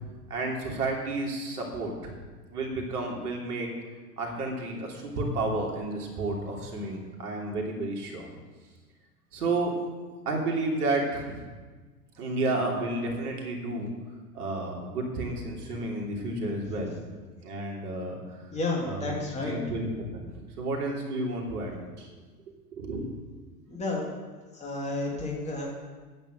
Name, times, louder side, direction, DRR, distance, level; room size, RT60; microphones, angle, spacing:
voice 1, 0.3-2.1 2.5-3.7 4.2-8.3 9.3-9.7 10.2-11.5 12.2-13.9 14.3-17.1 17.4-18.2 18.9-19.1 19.5-19.9 20.1-22.1 22.7-23.0, right 2 dB, 70° right, 0 dB, 3.2 m, -31 dB
voice 2, 18.5-19.6 23.7-24.1 24.5-25.6, left 2 dB, 15° left, -3 dB, 3.1 m, -31 dB
9.5 x 9.1 x 6.5 m, 1.4 s
hypercardioid pair, 100°, 47 cm